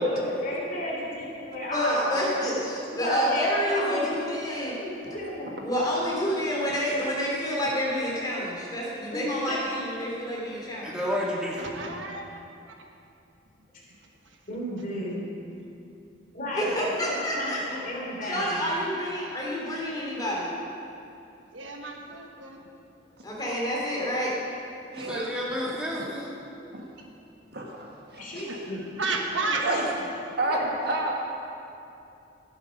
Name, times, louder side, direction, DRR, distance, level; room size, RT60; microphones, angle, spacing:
voice 1, 0.0-2.3 2.9-4.1 4.8-5.5 9.1-9.6 14.5-15.3 16.3-18.6 28.2-28.8 29.3-29.8 30.5-30.6, left 1 dB, 45° left, -4 dB, 3.3 m, -33 dB
voice 2, 1.7-4.7 5.6-10.9 16.5-17.6 18.2-20.5 23.2-24.4, equal, 20° left, -4 dB, 3.0 m, -28 dB
voice 3, 10.8-11.7 24.9-26.4, equal, 5° right, -5 dB, 1.8 m, -30 dB
voice 4, 11.6-12.3 21.5-22.6 25.0-25.4 28.5-28.6 29.0-29.6, right 3 dB, 80° right, 2 dB, 1.3 m, -32 dB
voice 5, 27.5-27.9 28.1-28.5 29.6-29.8 30.4-31.1, right 2 dB, 55° right, 0 dB, 1.6 m, -29 dB
13.0 x 10.5 x 5.3 m, 2.7 s
head